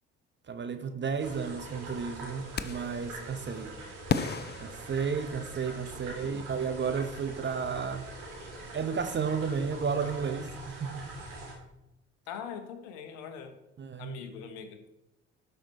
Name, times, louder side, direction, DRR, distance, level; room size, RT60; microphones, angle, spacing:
voice 1, 0.5-3.8 4.6-8.1 8.7-11.1 13.8-14.2, right 6 dB, 35° right, 0.9 m, -33 dB
Nolde Forest - Small Stream Wind In Trees, 1.2-11.5, right 2 dB, 75° right, 3.2 m, -43 dB
sound 1, 2.6-3.0 4.1-5.6, left 6 dB, 30° left, 0.7 m, -33 dB
voice 2, 12.3-13.6 14.0-14.9, left 7 dB, 80° left, 1.2 m, -42 dB
12.5 x 5.6 x 4.2 m
hypercardioid pair, 60°, 32 cm